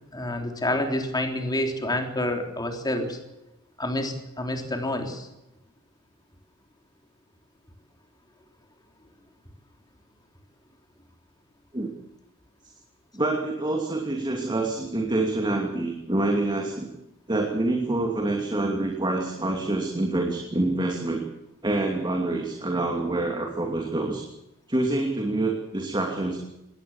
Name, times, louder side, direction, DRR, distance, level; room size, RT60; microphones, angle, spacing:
voice 1, 0.1-3.2 3.8-5.3, left 1 dB, 20° left, 4 dB, 3.5 m, -28 dB
voice 2, 13.1-16.9 17.3-21.2 21.6-24.2 24.7-26.4, right 2 dB, 20° right, 2 dB, 2.7 m, -26 dB
21.0 x 17.5 x 7.3 m, 0.90 s
head